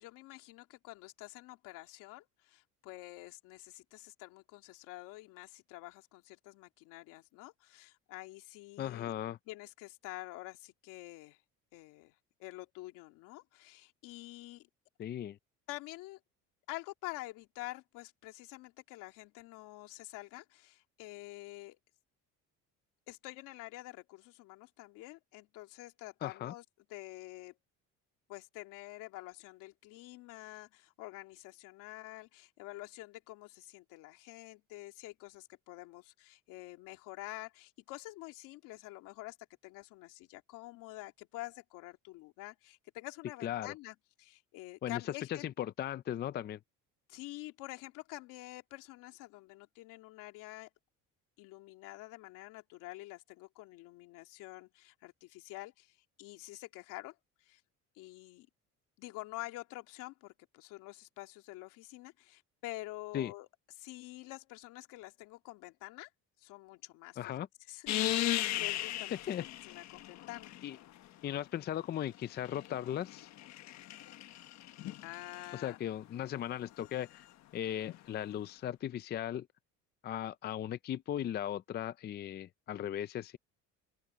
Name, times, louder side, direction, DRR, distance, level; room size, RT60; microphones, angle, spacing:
voice 1, 0.0-9.1 9.5-11.4 11.7-14.7 15.7-16.2 16.7-21.8 23.1-26.6 26.9-27.6 28.3-39.4 39.6-45.5 47.1-50.7 51.4-57.2 57.4-57.6 57.9-58.5 59.0-63.5 63.8-66.1 66.4-67.4 67.7-69.2 69.6-70.5 75.0-75.8, left 19 dB, 85° left, 2.6 m, -48 dB
voice 2, 8.8-9.4 15.0-15.4 26.2-26.5 43.4-43.7 44.8-45.0 45.3-46.6 63.1-63.3 67.2-67.5 69.3-69.4 70.6-70.8 71.2-73.3 75.5-77.3 77.5-79.5 80.0-83.4, left 11 dB, 30° left, 0.5 m, -37 dB
sound 1, 67.9-71.0 72.0-75.5 77.9-78.0, left 14 dB, 60° left, 1.3 m, -37 dB
open air
cardioid pair, 130°, 31 cm